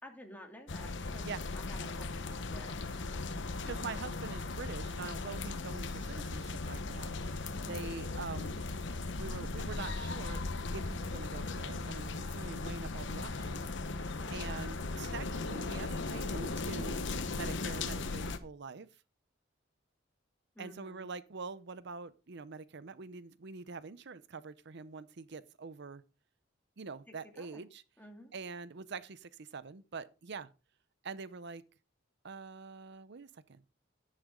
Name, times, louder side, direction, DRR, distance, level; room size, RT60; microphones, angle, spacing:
voice 1, 0.0-1.3 1.5-3.2 7.6-8.0 14.2-14.5 20.5-21.1 27.4-27.6 28.0-28.3, equal, 10° left, 2.6 m, -52 dB
sound 1, 0.7-18.4, left 3 dB, 65° left, 1.1 m, -38 dB
voice 2, 3.6-8.6 9.1-10.4 10.7-13.6 13.9-14.0 14.3-17.0 17.3-18.9 20.6-26.0 26.8-27.8 28.3-30.5 31.0-31.6 32.2-33.6, right 4 dB, 65° right, 0.7 m, -45 dB
11.0 x 10.0 x 3.7 m
head